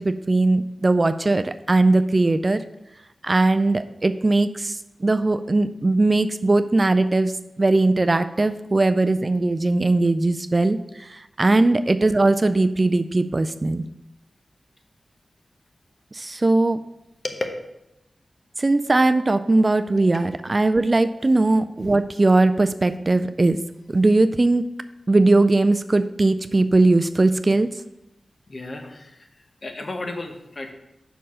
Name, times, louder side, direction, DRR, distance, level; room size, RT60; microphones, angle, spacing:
voice 1, 0.0-2.6 3.2-7.3 7.6-13.9 16.1-16.8 18.6-23.6 23.9-24.7 25.1-27.7, right 2 dB, 40° right, 11 dB, 0.3 m, -19 dB
voice 2, 28.5-29.2 29.6-30.7, left 2 dB, 50° left, 5 dB, 1.0 m, -32 dB
5.6 x 4.5 x 6.2 m, 0.89 s
wide cardioid pair, 65°, 0 cm